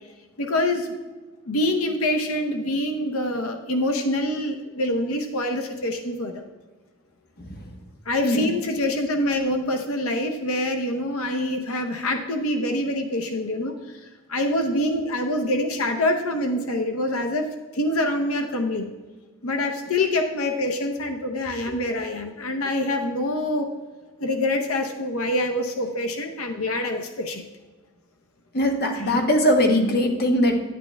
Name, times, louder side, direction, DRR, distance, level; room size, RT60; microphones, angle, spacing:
voice 1, 0.4-1.0 1.5-6.4 8.1-13.8 14.0-18.9 19.4-23.7 24.2-27.4 29.1-29.2, left 1 dB, 75° left, 5 dB, 0.8 m, -25 dB
voice 2, 7.4-7.7 8.2-8.5 21.7-21.8 28.5-30.6, equal, 45° left, 3 dB, 1.2 m, -21 dB
10.5 x 8.6 x 3.4 m, 1.2 s
head